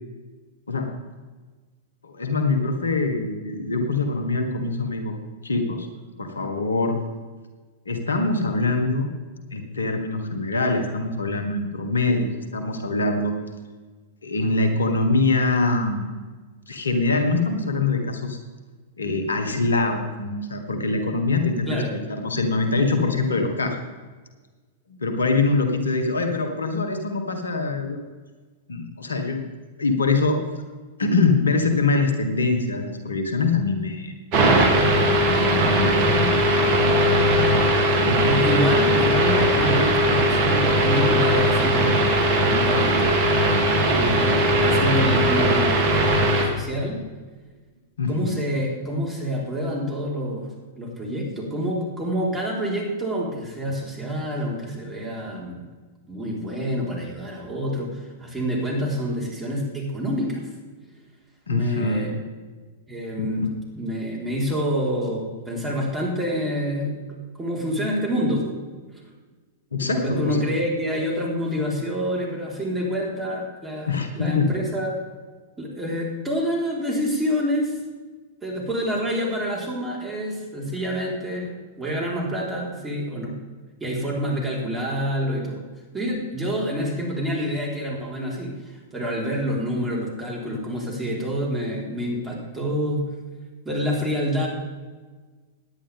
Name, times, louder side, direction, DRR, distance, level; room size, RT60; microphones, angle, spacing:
voice 1, 2.0-5.1 5.4-5.9 6.2-6.9 7.8-9.1 9.5-13.3 14.2-16.1 16.7-18.4 19.0-23.8 24.9-28.0 28.7-29.4 29.8-30.4 31.0-34.1 35.2-36.5 37.1-37.5 38.1-38.4 44.1-44.4 48.0-48.4 61.5-62.1 63.2-63.3 69.7-70.5 73.9-74.5, left 3 dB, 85° left, 6 dB, 1.7 m, -24 dB
sound 1, 34.3-46.4, right 1 dB, 45° right, 2.7 m, -19 dB
voice 2, 38.2-42.1 42.4-43.1 43.9-46.1 46.4-47.0 48.1-50.5 50.8-55.6 56.1-60.4 61.5-62.1 62.9-63.4 63.7-67.0 67.3-68.6 69.8-74.9 75.6-77.8 78.4-83.4 83.8-85.6 85.9-93.0 93.6-94.5, equal, 15° right, -3 dB, 4.4 m, -27 dB
17.0 x 10.5 x 3.6 m, 1.4 s
hypercardioid pair, 105°, 0 cm